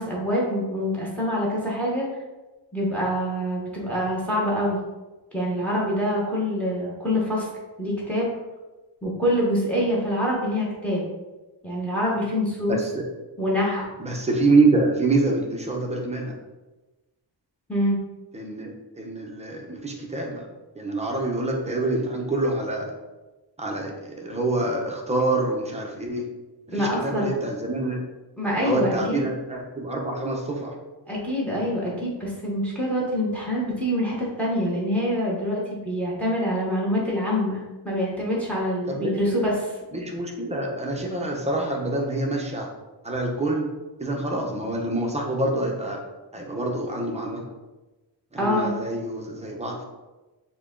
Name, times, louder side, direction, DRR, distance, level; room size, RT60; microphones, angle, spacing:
voice 1, 0.0-2.1 2.7-4.8 5.3-7.5 7.8-8.3 9.0-11.1 11.6-12.8 13.4-13.8 17.7-18.0 26.7-27.3 28.4-29.3 31.1-39.7 48.4-48.7, equal, 5° left, -4 dB, 0.9 m, -25 dB
voice 2, 12.7-13.1 14.0-16.3 18.3-20.5 20.8-22.9 23.6-26.3 26.7-28.0 28.6-30.8 38.9-39.1 39.9-42.7 43.0-43.7 44.0-46.0 46.3-47.4 48.3-49.9, right 2 dB, 15° right, 0 dB, 0.6 m, -26 dB
5.8 x 2.2 x 3.7 m, 1.1 s
wide cardioid pair, 170°, 45 cm